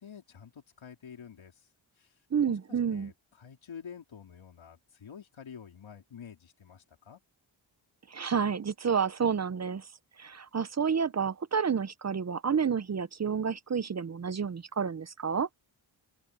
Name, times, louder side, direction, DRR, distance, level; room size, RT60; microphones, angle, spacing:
voice 1, 0.0-1.6 2.0-2.2 2.5-7.2, left 7 dB, 85° left, 3.8 m, -48 dB
voice 2, 2.3-3.1 8.1-9.9 10.2-15.5, right 6 dB, 35° right, 0.6 m, -30 dB
open air
wide cardioid pair, 125°, 46 cm